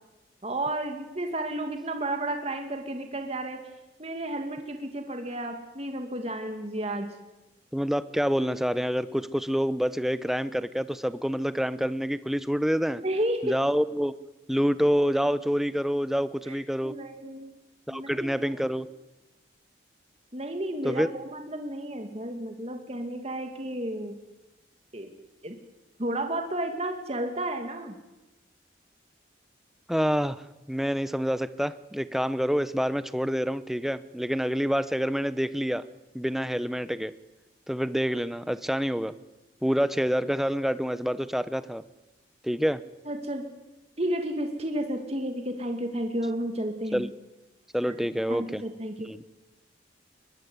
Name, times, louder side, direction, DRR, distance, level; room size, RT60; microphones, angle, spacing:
voice 1, 0.4-3.6 4.0-7.1 13.0-13.6 16.5-17.5 17.9-18.6 20.3-24.2 24.9-25.1 25.4-25.6 26.0-28.0 43.1-43.5 44.0-47.1 47.9-48.0 48.3-49.1, right 1 dB, 35° right, 4 dB, 2.4 m, -32 dB
voice 2, 7.7-13.0 13.4-14.1 14.5-16.9 17.9-18.9 20.8-21.1 29.9-35.8 36.1-37.1 37.7-39.1 39.6-41.8 42.4-42.8 46.9-47.1 47.7-48.6 49.0-49.2, equal, ahead, 13 dB, 0.8 m, -27 dB
22.5 x 21.5 x 9.6 m, 1.0 s
head